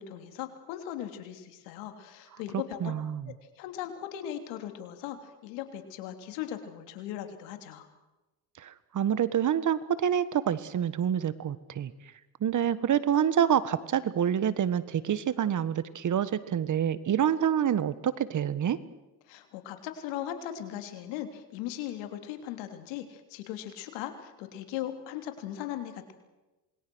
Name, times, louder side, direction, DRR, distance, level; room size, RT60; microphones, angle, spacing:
voice 1, 0.0-2.9 3.3-7.9 19.3-26.1, left 11 dB, 80° left, 7 dB, 3.4 m, -38 dB
voice 2, 2.8-3.2 8.6-11.9 12.4-18.8, right 9 dB, 40° right, 16 dB, 1.5 m, -27 dB
27.5 x 21.5 x 6.3 m, 1.1 s
supercardioid pair, 95°, 44 cm